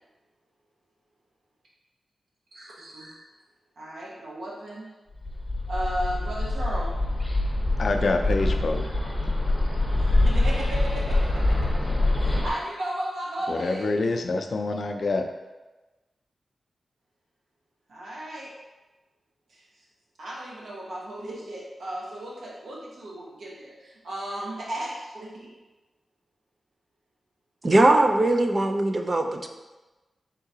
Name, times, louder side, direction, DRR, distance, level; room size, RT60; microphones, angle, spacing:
voice 1, 3.8-4.9 5.7-6.9 10.2-11.7 12.2-14.0 17.9-18.5 19.5-19.6 20.2-25.5, right 1 dB, 85° right, -5 dB, 1.0 m, -35 dB
Bird, 5.2-12.5, left 2 dB, 10° left, 0.8 m, -24 dB
voice 2, 7.8-8.8 13.5-15.2, left 3 dB, 60° left, 4 dB, 0.4 m, -26 dB
voice 3, 27.6-29.5, right 2 dB, 35° right, 4 dB, 0.4 m, -20 dB
4.8 x 3.7 x 2.8 m, 1.1 s
wide cardioid pair, 95°, 0 cm